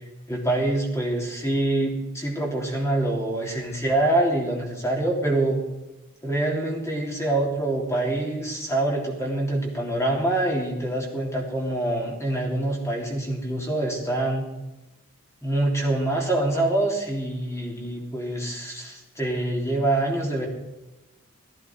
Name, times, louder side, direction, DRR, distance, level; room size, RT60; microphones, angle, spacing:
voice 1, 0.3-5.6 6.2-14.4 15.4-20.5, right 1 dB, 15° left, -1 dB, 3.4 m, -25 dB
17.5 x 14.5 x 4.7 m, 1.0 s
head